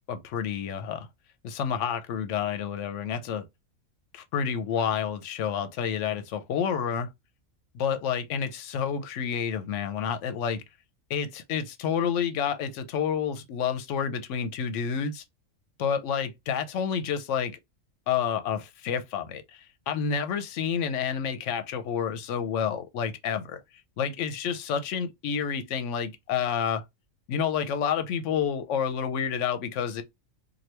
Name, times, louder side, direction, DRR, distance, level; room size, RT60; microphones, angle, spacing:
voice 1, 0.1-1.1 1.4-3.4 4.1-7.1 7.7-10.6 11.1-15.2 15.8-17.6 18.1-23.6 24.0-26.8 27.3-30.0, left 7 dB, 70° left, 0.9 m, -29 dB
2.9 x 2.5 x 3.2 m
omnidirectional pair, 1.4 m